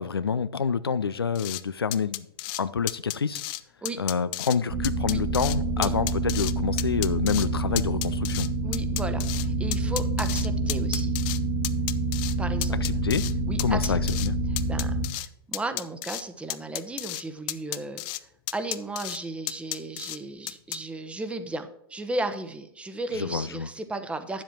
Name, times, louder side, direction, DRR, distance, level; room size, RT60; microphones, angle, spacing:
voice 1, 0.0-2.3 2.6-3.4 4.0-8.5 12.8-13.3 13.6-14.3 23.1-23.7, left 6 dB, 85° left, 0.5 m, -27 dB
sound 1, 1.4-1.6 1.9-2.6 2.9-3.6 3.9-4.6 4.8-5.6 5.8-6.5 6.8-7.5 7.8-9.5 9.7-11.4 11.6-12.4 12.6-13.3 13.6-14.3 14.6-15.3 15.5-16.2 16.5-17.2 17.5-18.2 18.5-19.2 19.5-20.2 20.5-20.8, left 18 dB, 40° left, 0.5 m, -32 dB
sound 2, 4.7-15.1, right 2 dB, 50° right, 2.3 m, -27 dB
voice 2, 8.6-11.1 12.4-13.0 13.5-14.2 14.5-18.0 18.5-24.4, right 2 dB, 10° right, 1.0 m, -35 dB
10.5 x 7.5 x 4.4 m
figure-of-eight pair, 100°, 12 cm